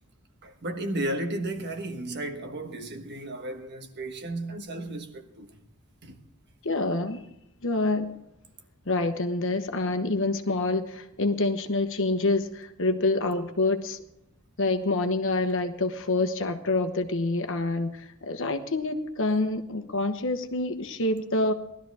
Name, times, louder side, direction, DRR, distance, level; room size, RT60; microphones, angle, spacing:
voice 1, 0.4-5.5 6.0-6.2, right 1 dB, 50° right, 1.4 m, -34 dB
voice 2, 6.6-7.3 7.6-8.1 8.9-14.0 14.6-21.5, left 2 dB, 60° left, 1.2 m, -27 dB
19.5 x 13.0 x 3.5 m
head